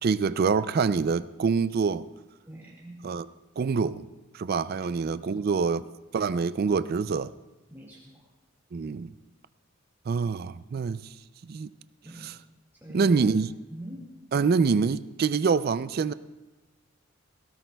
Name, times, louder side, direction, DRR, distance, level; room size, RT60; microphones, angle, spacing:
voice 1, 0.0-2.1 3.0-3.3 3.6-4.0 4.3-5.9 6.1-7.3 8.7-9.1 10.1-11.1 11.4-11.7 12.2-12.4 12.9-13.5 14.3-16.1, right 5 dB, 45° right, 0.3 m, -26 dB
voice 2, 2.4-3.0 4.8-5.5 7.7-8.3 12.0-12.3 12.7-13.3 13.7-14.1, right 1 dB, 10° right, 1.8 m, -44 dB
18.5 x 17.0 x 2.3 m
head